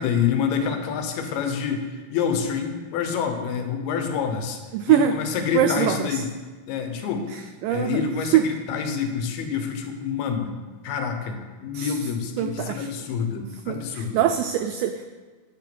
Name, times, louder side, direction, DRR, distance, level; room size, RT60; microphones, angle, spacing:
voice 1, 0.0-4.6 4.9-6.3 6.7-7.3 7.7-10.5 10.8-14.2, left 6 dB, 80° left, 5 dB, 2.9 m, -27 dB
voice 2, 4.7-5.1 5.5-6.2 7.3-8.1 8.3-8.4 11.7-12.0 12.4-12.9 13.7-15.1, right 11 dB, 90° right, 7 dB, 2.0 m, -23 dB
9.8 x 6.0 x 6.0 m, 1.3 s
omnidirectional pair, 4.5 m